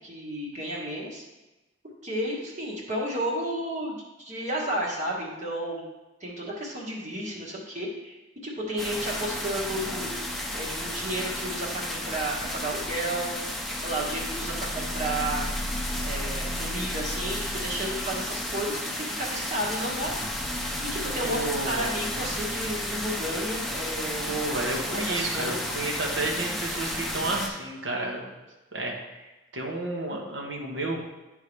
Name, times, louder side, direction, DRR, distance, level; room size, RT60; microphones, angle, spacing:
voice 1, 0.0-1.2 2.0-5.8 6.2-8.2 8.4-10.1 10.5-13.3 13.8-15.5 16.0-20.1 20.8-24.3 24.9-25.6, right 1 dB, 35° right, -3 dB, 1.6 m, -32 dB
sound 1, 8.8-27.5, left 1 dB, ahead, 0.7 m, -32 dB
voice 2, 21.2-21.9 24.3-28.3 28.7-28.9 29.5-31.0, right 2 dB, 65° right, -1 dB, 1.3 m, -31 dB
11.5 x 3.8 x 3.2 m, 1.1 s
head